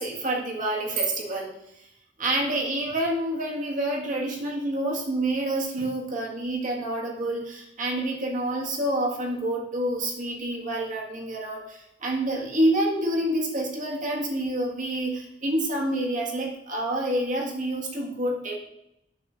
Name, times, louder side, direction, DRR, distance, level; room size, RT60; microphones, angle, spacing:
voice 1, 0.0-1.5 2.2-18.6, right 1 dB, 45° right, -1 dB, 1.8 m, -28 dB
8.7 x 4.1 x 6.4 m, 0.80 s
head